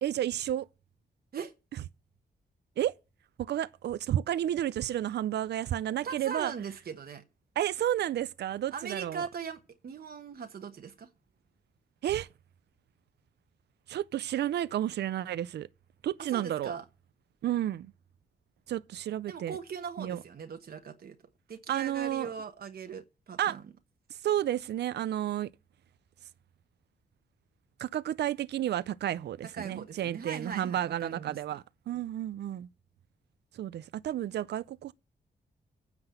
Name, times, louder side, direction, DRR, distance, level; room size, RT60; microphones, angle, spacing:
voice 1, 0.0-0.7 2.8-3.0 3.4-6.5 7.6-9.2 12.0-12.3 13.9-15.7 16.0-16.7 17.4-17.9 18.7-19.6 20.0-20.2 21.7-22.3 23.4-23.6 24.1-25.5 27.8-32.7 33.5-34.9, right 11 dB, 90° right, 0.5 m, -31 dB
voice 2, 6.0-7.2 8.7-11.1 16.3-16.8 19.3-21.2 21.5-23.6 29.5-31.6, right 6 dB, 65° right, 1.1 m, -40 dB
9.7 x 5.9 x 8.0 m
cardioid pair, 100°, 17 cm